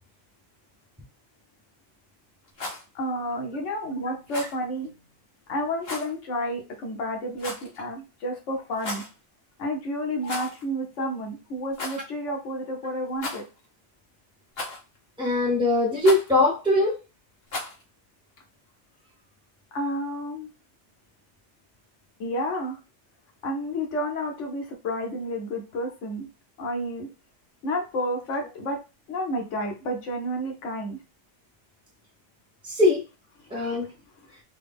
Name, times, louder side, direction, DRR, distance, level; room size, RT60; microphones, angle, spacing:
Rattle, 2.4-2.8 4.3-4.6 5.8-6.1 7.4-7.8 8.7-9.1 10.2-10.6 10.9-11.0 11.7-12.0 13.2-13.7 14.6-15.0 16.0-16.3 17.5-17.8, left 2 dB, 55° left, 1.2 m, -35 dB
voice 1, 2.9-4.9 5.5-9.0 9.6-13.4 19.7-20.5 22.2-22.8 23.4-26.3 26.6-27.1 27.6-28.8 29.1-31.0 33.5-33.6, equal, 85° left, 2 dB, 1.2 m, -30 dB
voice 2, 15.2-16.9 32.6-33.0 33.5-33.9, left 2 dB, 5° right, -4 dB, 0.5 m, -21 dB
3.8 x 2.0 x 3.4 m, 0.30 s
omnidirectional pair, 1.2 m